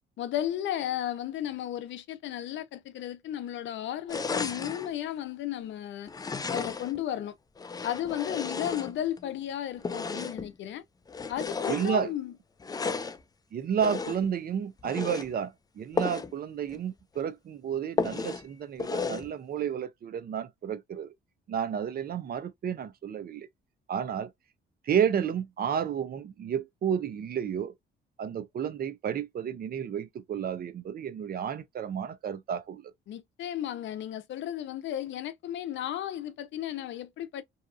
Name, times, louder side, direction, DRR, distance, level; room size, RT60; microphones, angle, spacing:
voice 1, 0.2-6.1 6.5-7.4 7.8-10.8 11.3-12.3 33.1-37.4, left 11 dB, 70° left, 0.5 m, -34 dB
sound 1, 4.1-4.9 6.1-7.0 7.6-9.2 9.8-10.5 11.1-12.0 12.6-13.2 13.8-14.3 14.8-15.3 15.9-16.3 16.7-16.8 17.2-17.3 18.0-18.5 18.8-19.3, left 4 dB, 20° left, 0.3 m, -33 dB
voice 2, 11.7-12.1 13.5-21.1 21.5-23.5 23.9-24.3 24.9-27.7 28.2-32.9, right 8 dB, 50° right, 0.5 m, -31 dB
2.7 x 2.3 x 2.4 m
cardioid pair, 90°, 20 cm